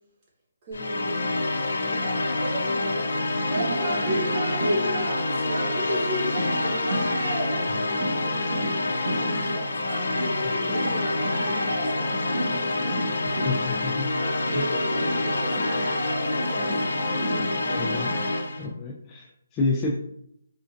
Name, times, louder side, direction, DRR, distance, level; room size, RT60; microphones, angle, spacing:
voice 1, 0.6-1.3 1.8-4.8 5.2-9.8 10.6-13.5 14.7-18.0, right 1 dB, 30° right, -3 dB, 1.0 m, -39 dB
sound 1, 0.7-18.7, left 2 dB, 80° left, 0.5 m, -27 dB
sound 2, 1.5-18.4, right 1 dB, 70° right, 0.8 m, -32 dB
voice 2, 13.4-14.2 14.5-14.7 17.8-18.1 18.6-20.0, left 3 dB, 20° left, -3 dB, 0.3 m, -29 dB
4.3 x 2.5 x 2.4 m, 0.75 s
hypercardioid pair, 160°, 0 cm